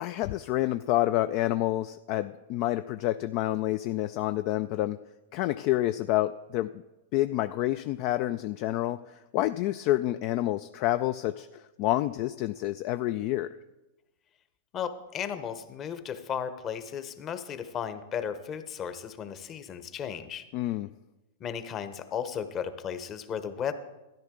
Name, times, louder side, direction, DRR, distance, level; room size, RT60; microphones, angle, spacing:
voice 1, 0.0-5.0 5.3-6.8 7.1-13.6 20.5-20.9, left 15 dB, 50° left, 11 dB, 0.3 m, -28 dB
voice 2, 14.7-20.5 21.4-23.7, left 8 dB, 30° left, 11 dB, 0.9 m, -35 dB
13.0 x 10.5 x 3.8 m, 1.0 s
hypercardioid pair, 110°, 0 cm